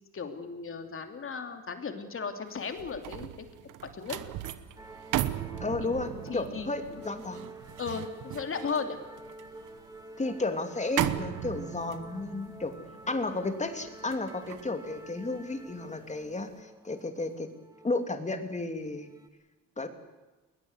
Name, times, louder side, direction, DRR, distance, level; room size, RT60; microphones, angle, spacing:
voice 1, 0.1-3.3 3.8-4.2 5.8-6.7 7.8-9.0, left 5 dB, 45° left, 6 dB, 3.0 m, -36 dB
sound 1, 2.6-15.9 16.3-16.5, right 12 dB, 85° right, 1.2 m, -37 dB
sound 2, 4.8-19.3, right 1 dB, 10° right, 2.2 m, -49 dB
voice 2, 5.6-7.5 10.2-12.7 13.1-17.5 17.8-19.1 19.8-19.9, left 2 dB, 25° left, 7 dB, 2.7 m, -33 dB
21.0 x 20.5 x 8.2 m, 1.2 s
cardioid pair, 90°, 30 cm